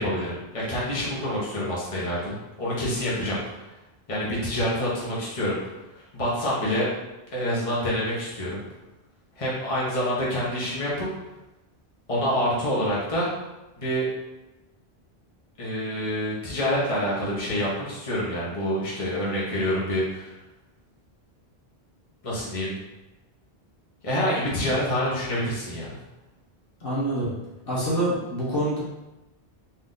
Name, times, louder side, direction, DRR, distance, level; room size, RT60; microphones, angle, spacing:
voice 1, 0.0-3.6 4.1-5.6 6.1-6.9 7.3-8.6 9.4-11.1 12.1-13.3 13.8-14.1 15.6-20.3 22.2-22.7 24.0-26.0, equal, 30° left, -6 dB, 1.1 m, -27 dB
voice 2, 26.8-27.3 27.6-28.8, right 1 dB, 60° left, -6 dB, 1.3 m, -26 dB
4.2 x 2.6 x 3.8 m, 1.0 s
omnidirectional pair, 1.1 m